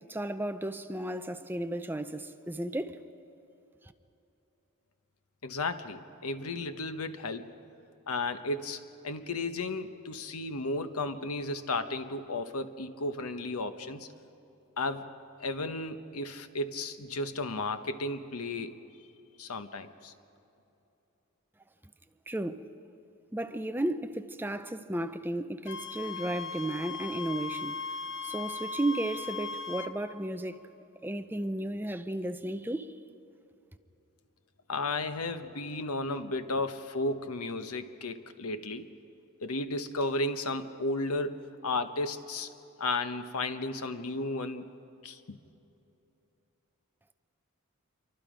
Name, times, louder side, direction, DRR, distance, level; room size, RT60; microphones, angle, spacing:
voice 1, 0.1-3.0 22.3-22.7 23.3-27.8 28.2-30.6 31.0-33.0, right 1 dB, 10° right, 0.5 m, -34 dB
voice 2, 5.4-7.5 8.1-14.1 14.8-15.1 15.4-18.7 19.4-20.1 34.7-38.9 39.4-42.5 42.8-44.7 45.0-45.4, left 2 dB, 80° left, 1.1 m, -34 dB
Wind instrument woodwind instrument, 25.7-29.9, left 4 dB, 60° left, 0.9 m, -38 dB
27.5 x 24.0 x 5.1 m
head